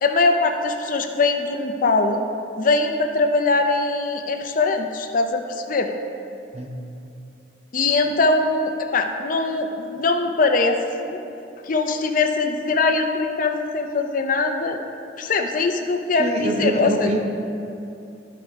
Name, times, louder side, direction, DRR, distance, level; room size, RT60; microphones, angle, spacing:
voice 1, 0.0-2.2 2.6-5.9 7.7-11.2 11.6-14.8 15.2-17.1, left 3 dB, 45° left, 5 dB, 0.5 m, -22 dB
voice 2, 16.2-17.2, right 2 dB, 35° right, 2 dB, 0.7 m, -24 dB
12.5 x 4.7 x 3.6 m, 2.6 s
head